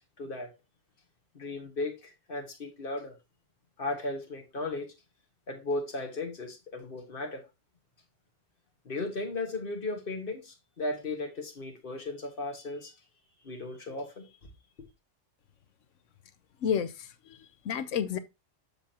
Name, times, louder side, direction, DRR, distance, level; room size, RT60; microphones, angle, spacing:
voice 1, 0.2-0.5 1.3-3.1 3.8-4.9 5.5-7.4 8.8-12.9 13.4-14.3, left 2 dB, 45° left, 1.6 m, -36 dB
voice 2, 16.6-18.2, left 8 dB, 75° left, 1.1 m, -31 dB
6.8 x 6.0 x 2.9 m
omnidirectional pair, 1.3 m